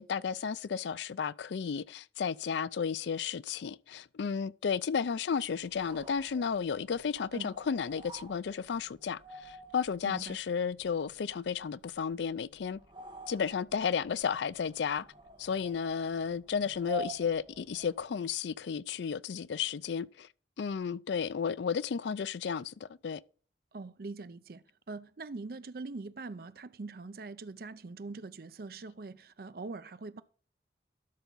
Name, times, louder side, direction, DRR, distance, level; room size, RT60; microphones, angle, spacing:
voice 1, 0.0-12.8 13.3-15.0 15.4-20.3 20.6-23.2, left 6 dB, 75° left, 0.4 m, -33 dB
sound 1, 5.6-18.2, right 1 dB, 25° right, 1.7 m, -49 dB
voice 2, 10.0-10.4 23.7-30.2, right 3 dB, 55° right, 0.5 m, -43 dB
12.5 x 5.7 x 4.0 m
head